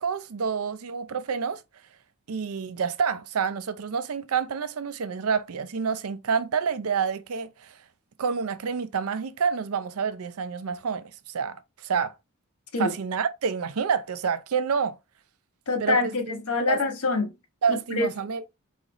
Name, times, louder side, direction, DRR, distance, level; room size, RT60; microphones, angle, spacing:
voice 1, 0.0-1.6 2.3-7.8 8.2-12.1 12.8-15.0 15.8-16.1 16.7-16.8 17.6-18.5, right 6 dB, 75° right, 0.5 m, -28 dB
voice 2, 15.7-17.3 17.9-18.1, left 3 dB, 80° left, 1.2 m, -25 dB
4.0 x 3.9 x 3.0 m
head